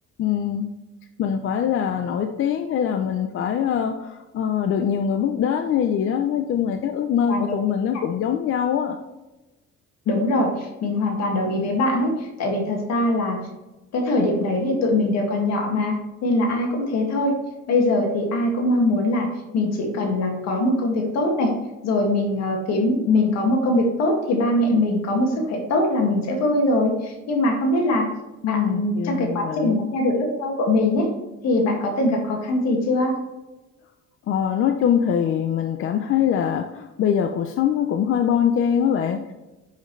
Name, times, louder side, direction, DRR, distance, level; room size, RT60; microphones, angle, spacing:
voice 1, 0.2-0.7 1.2-9.0 28.4-29.8 34.3-39.3, left 8 dB, 45° left, 6 dB, 0.6 m, -23 dB
voice 2, 10.1-13.4 13.9-16.0 16.2-17.4 17.7-19.3 19.5-21.5 21.8-28.1 28.5-31.1 31.4-33.2, left 2 dB, 65° left, 1 dB, 2.2 m, -22 dB
10.5 x 6.6 x 3.2 m, 1.1 s
cardioid pair, 180°, 29 cm